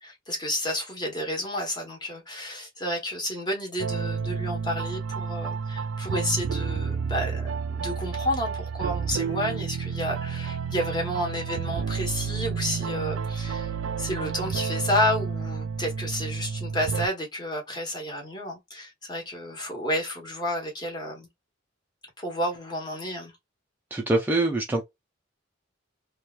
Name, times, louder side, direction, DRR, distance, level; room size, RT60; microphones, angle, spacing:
voice 1, 0.0-13.7 14.0-21.3 22.2-23.3, left 1 dB, 20° left, 1.1 m, -31 dB
sound 1, 3.8-17.1, right 6 dB, 90° right, 0.4 m, -30 dB
voice 2, 23.9-24.8, right 2 dB, 10° right, 0.4 m, -24 dB
3.0 x 2.2 x 2.3 m
head